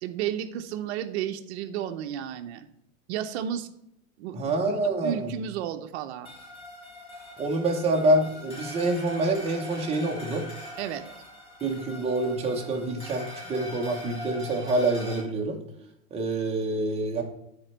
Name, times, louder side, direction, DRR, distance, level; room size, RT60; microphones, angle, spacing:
voice 1, 0.0-2.7 3.1-3.7 4.2-4.7 5.0-6.3 10.8-11.0, right 10 dB, 50° right, 8 dB, 0.8 m, -32 dB
voice 2, 4.3-5.3 7.4-10.5 11.6-15.6 16.1-17.2, right 2 dB, 15° right, 1 dB, 0.9 m, -26 dB
sound 1, 6.2-15.2, left 1 dB, 15° left, 1.7 m, -42 dB
9.6 x 4.4 x 4.5 m, 0.81 s
supercardioid pair, 160°, 42 cm